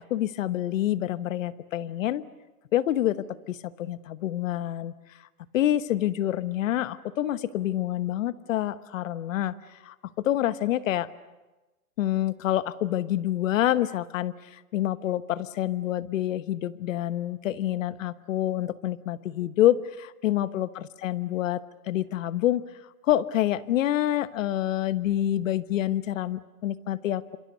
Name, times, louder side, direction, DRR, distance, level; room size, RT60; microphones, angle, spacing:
voice 1, 0.1-2.2 2.7-4.9 5.5-9.5 9.8-11.1 12.0-22.6 23.0-27.4, left 13 dB, 55° left, 14 dB, 1.2 m, -27 dB
29.0 x 26.5 x 6.8 m, 1.1 s
hypercardioid pair, 160°, 45 cm